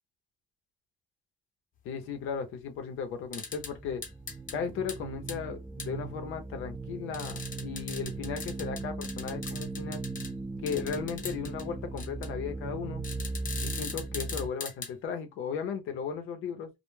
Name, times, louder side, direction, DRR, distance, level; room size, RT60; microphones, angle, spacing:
voice 1, 1.8-4.0 4.5-10.0 10.6-13.0 13.6-16.7, left 6 dB, 90° left, 0.6 m, -36 dB
sound 1, 3.2-14.5, right 3 dB, 10° right, 0.4 m, -38 dB
sound 2, 3.3-3.7 4.0-4.6 4.9-5.0 5.3-5.4 5.8-5.9 7.1-10.3 10.7-11.6 12.0-12.3 13.0-14.9, left 5 dB, 45° left, 0.7 m, -40 dB
2.1 x 2.1 x 3.1 m
cardioid pair, 90°, 20 cm